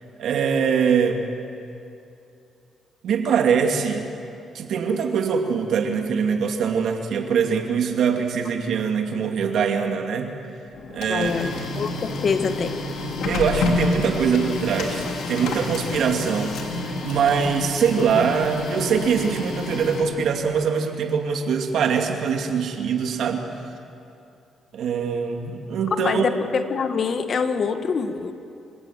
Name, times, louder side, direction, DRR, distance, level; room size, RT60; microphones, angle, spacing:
voice 1, 0.2-1.3 3.0-4.1 4.5-10.3 10.9-11.5 13.2-23.5 24.7-26.3, right 6 dB, 70° right, 4 dB, 2.4 m, -23 dB
Printer, 10.7-20.5, left 2 dB, 75° left, 3.2 m, -29 dB
voice 2, 11.1-12.8 26.0-28.3, left 5 dB, 50° left, 9 dB, 1.5 m, -25 dB
27.0 x 16.5 x 7.5 m, 2.7 s
cardioid pair, 90°, 0 cm